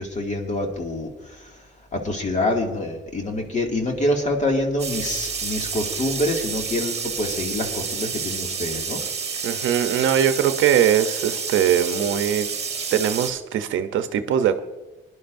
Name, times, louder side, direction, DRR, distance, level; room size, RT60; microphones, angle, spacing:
voice 1, 0.0-1.6 1.9-9.0, left 1 dB, 35° left, 2 dB, 2.2 m, -26 dB
sound 1, 4.8-13.3, right 5 dB, 30° right, 1.4 m, -29 dB
voice 2, 9.4-12.5 12.9-14.6, right 9 dB, 80° right, 8 dB, 0.8 m, -21 dB
21.0 x 11.0 x 2.6 m, 1.1 s
cardioid pair, 90°, 20 cm